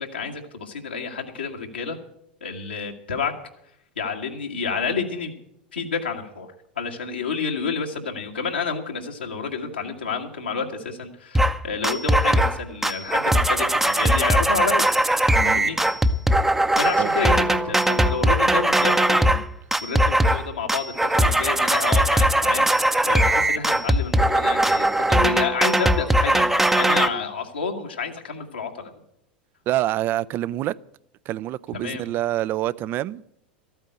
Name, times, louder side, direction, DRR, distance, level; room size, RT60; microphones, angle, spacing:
voice 1, 0.0-2.0 2.4-3.3 4.0-5.3 5.7-6.5 6.8-14.9 15.4-15.8 16.8-19.4 19.8-22.7 23.1-28.9 31.7-32.1, left 5 dB, 80° left, 1 dB, 1.7 m, -29 dB
sound 1, 11.3-11.6 11.8-12.6 12.8-19.4 19.7-20.4 20.7-27.1, right 1 dB, 5° right, 0.7 m, -20 dB
voice 2, 15.3-15.9 17.0-17.1 29.7-30.8 31.3-33.2, right 14 dB, 40° right, 20 dB, 0.4 m, -26 dB
13.5 x 9.0 x 7.8 m, 0.76 s
figure-of-eight pair, 85°, 5 cm